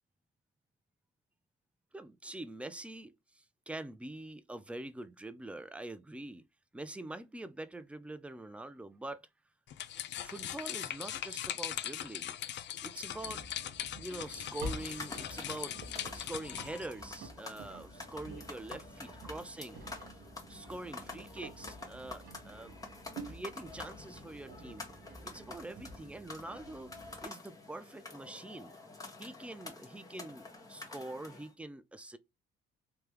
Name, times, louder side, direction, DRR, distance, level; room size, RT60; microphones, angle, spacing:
voice 1, 1.9-6.5 6.7-9.2 10.2-12.4 12.6-13.4 14.0-15.8 16.1-19.8 20.5-22.9 23.2-24.9 25.2-26.9 27.2-28.8 29.2-32.2, right 2 dB, 5° right, 0.4 m, -45 dB
sound 1, 9.7-16.9, left 11 dB, 65° left, 0.4 m, -40 dB
Engine, 13.1-27.3, right 1 dB, 85° right, 1.0 m, -49 dB
sound 2, 14.2-31.5, left 3 dB, 15° left, 1.1 m, -49 dB
3.4 x 2.2 x 2.9 m
cardioid pair, 90°, 20 cm